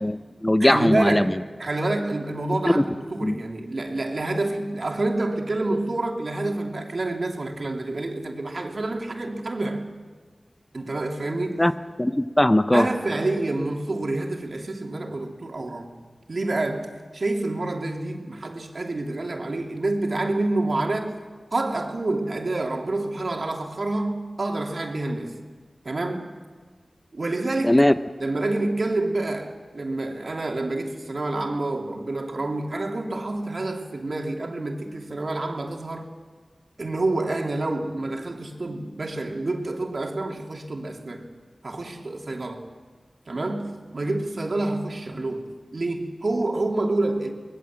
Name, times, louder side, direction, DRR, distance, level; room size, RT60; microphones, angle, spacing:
voice 1, 0.0-1.3 2.6-2.8 3.2-3.4 11.6-11.7 12.0-12.9 27.6-27.9, left 1 dB, 20° left, 0.9 m, -19 dB
voice 2, 0.6-9.9 10.7-11.6 12.7-15.9 16.3-21.1 21.5-25.3 25.8-26.3 27.1-27.7 28.2-36.1 36.8-41.2 41.6-42.6 43.3-45.4 45.7-47.3, right 2 dB, 65° right, 3.1 m, -28 dB
25.0 x 20.5 x 7.6 m
cardioid pair, 45°, 0 cm